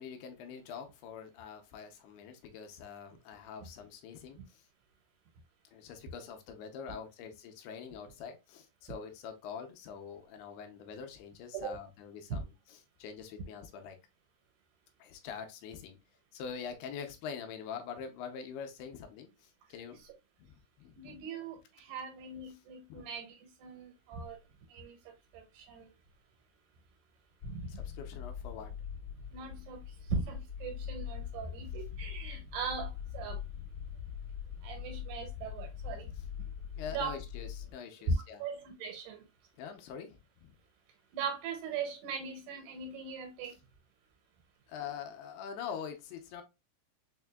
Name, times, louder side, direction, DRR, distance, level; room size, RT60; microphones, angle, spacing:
voice 1, 0.0-4.6 5.7-14.0 15.0-16.0 16.3-20.0 20.4-21.2 22.9-23.0 27.7-28.7 36.1-36.3 36.8-38.4 39.6-40.5 43.4-43.6 44.7-46.4, left 7 dB, 80° left, 2.6 m, -45 dB
voice 2, 21.0-24.4 24.7-25.0 25.3-25.9 27.4-27.7 29.3-29.8 30.1-33.4 34.6-36.1 36.9-37.2 38.0-38.1 38.4-39.2 41.1-43.6, right 4 dB, 75° right, 3.1 m, -39 dB
sound 1, 27.4-37.7, left 8 dB, 40° left, 1.6 m, -42 dB
6.4 x 2.6 x 2.2 m
omnidirectional pair, 4.7 m